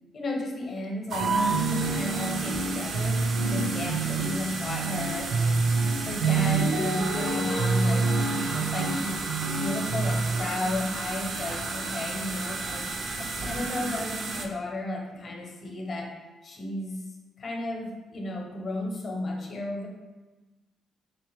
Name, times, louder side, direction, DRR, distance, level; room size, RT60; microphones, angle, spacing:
voice 1, 0.1-3.2 3.5-5.7 6.0-8.1 8.5-9.2 9.6-12.9 13.2-16.1 16.4-17.0 17.4-19.9, left 1 dB, 45° left, 0 dB, 0.8 m, -33 dB
sound 1, 1.1-14.5, right 3 dB, 55° right, 0.4 m, -33 dB
sound 2, 1.2-10.4, right 3 dB, 80° right, 0.9 m, -27 dB
3.3 x 2.9 x 3.3 m, 1.2 s
cardioid pair, 90°, 0 cm